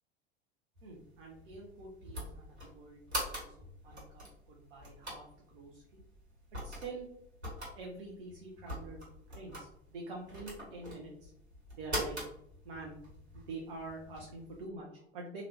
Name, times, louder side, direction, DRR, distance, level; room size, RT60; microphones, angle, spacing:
sound 1, 0.7-14.6, equal, 85° right, 1.4 m, -44 dB
voice 1, 0.8-3.0 3.3-5.2 5.5-6.0 6.6-7.1 7.7-9.0 9.3-11.3 11.8-12.2 12.6-13.0 13.3-15.4, right 3 dB, 55° right, -1 dB, 0.7 m, -46 dB
2.8 x 2.4 x 3.3 m, 0.73 s
figure-of-eight pair, 80°, 32 cm